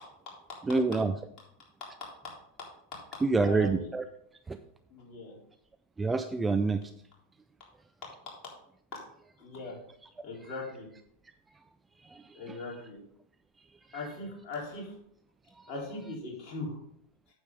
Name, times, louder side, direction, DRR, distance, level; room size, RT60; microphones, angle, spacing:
voice 1, 0.7-1.1 3.2-4.0 4.5-4.6 6.0-6.8 12.0-12.6 13.9-14.0 15.6-15.7, right 3 dB, 10° right, 9 dB, 0.4 m, -28 dB
voice 2, 3.4-3.8 4.9-5.4 8.9-9.0 9.4-9.8 10.2-10.9 12.3-13.0 13.9-14.9 15.7-16.8, left 2 dB, 35° left, -3 dB, 3.7 m, -39 dB
9.2 x 7.0 x 3.7 m, 0.69 s
figure-of-eight pair, 90°, 0 cm